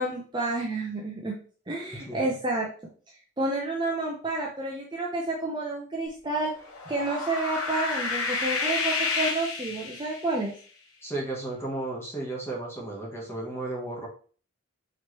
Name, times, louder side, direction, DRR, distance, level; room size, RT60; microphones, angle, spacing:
voice 1, 0.0-1.4 1.7-2.7 3.4-6.5 6.9-10.5, right 2 dB, 20° right, -2 dB, 0.6 m, -30 dB
sound 1, 6.6-10.4, left 4 dB, 85° left, 0.9 m, -30 dB
voice 2, 11.0-14.1, right 2 dB, 10° left, -2 dB, 1.1 m, -34 dB
4.4 x 3.1 x 3.0 m, 0.41 s
head